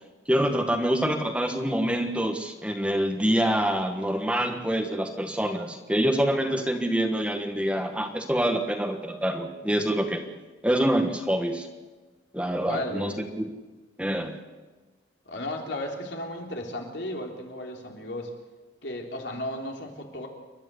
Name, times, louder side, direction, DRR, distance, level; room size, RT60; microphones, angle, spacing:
voice 1, 0.3-10.3 10.6-11.7 12.3-13.5 14.0-14.4, right 1 dB, 5° right, 5 dB, 1.5 m, -26 dB
voice 2, 12.6-13.2 15.3-18.3 18.8-20.3, left 1 dB, 70° left, 2 dB, 3.5 m, -34 dB
29.0 x 12.0 x 8.3 m, 1.2 s
head